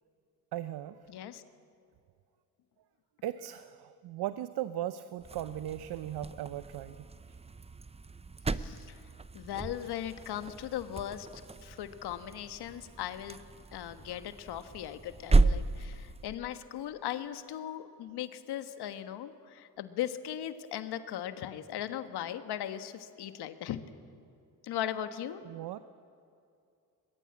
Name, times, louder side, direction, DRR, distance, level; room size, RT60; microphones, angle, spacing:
voice 1, 0.5-1.1 3.2-7.4 25.4-25.8, right 12 dB, 75° right, 13 dB, 0.8 m, -38 dB
voice 2, 1.1-1.4 8.5-9.0 9.3-13.4 13.7-23.8 24.6-25.4, left 11 dB, 75° left, 10 dB, 1.4 m, -38 dB
sound 1, 5.2-16.3, right 3 dB, 15° right, 0.7 m, -34 dB
21.5 x 21.5 x 8.7 m, 2.5 s
cardioid pair, 75°, 39 cm